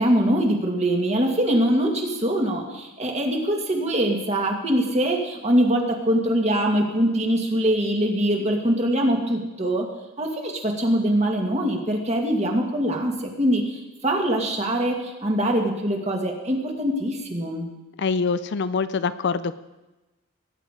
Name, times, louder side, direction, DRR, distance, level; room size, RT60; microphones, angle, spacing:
voice 1, 0.0-9.9 10.2-17.7, right 1 dB, 30° right, 2 dB, 1.9 m, -23 dB
voice 2, 18.0-19.6, left 5 dB, 50° left, 13 dB, 0.4 m, -24 dB
19.5 x 9.2 x 5.0 m, 1.1 s
head